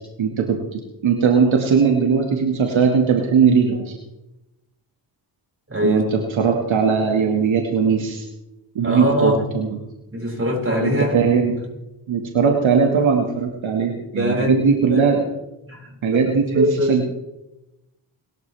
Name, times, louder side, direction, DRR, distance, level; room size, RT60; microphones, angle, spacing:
voice 1, 0.2-4.0 5.8-8.3 8.7-9.8 10.8-11.6 12.1-15.2 16.0-17.2, right 6 dB, 70° right, 2 dB, 2.2 m, -19 dB
voice 2, 5.7-6.0 8.8-9.4 10.1-11.2 14.1-15.0 15.7-17.0, equal, 30° right, -2 dB, 7.1 m, -22 dB
29.5 x 13.5 x 3.5 m, 0.94 s
cardioid pair, 60°, 48 cm